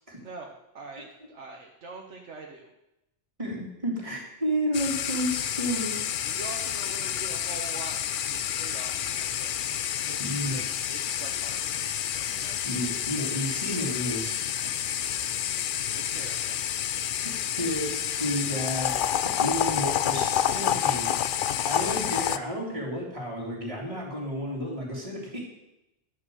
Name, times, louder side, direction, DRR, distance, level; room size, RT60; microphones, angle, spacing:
voice 1, 0.2-2.7 6.2-8.0 8.3-9.7 10.1-11.9 12.3-12.6 15.5-16.5 19.6-19.8 21.5-22.0, right 4 dB, 85° right, 0 dB, 1.5 m, -44 dB
voice 2, 3.4-6.0 10.2-10.6 12.1-12.3 12.6-15.0 17.2-21.2 21.6-25.5, equal, 30° right, -3 dB, 3.3 m, -32 dB
sound 1, 4.7-22.4, left 10 dB, 60° left, 0.6 m, -29 dB
11.5 x 6.4 x 7.8 m, 0.89 s
omnidirectional pair, 1.2 m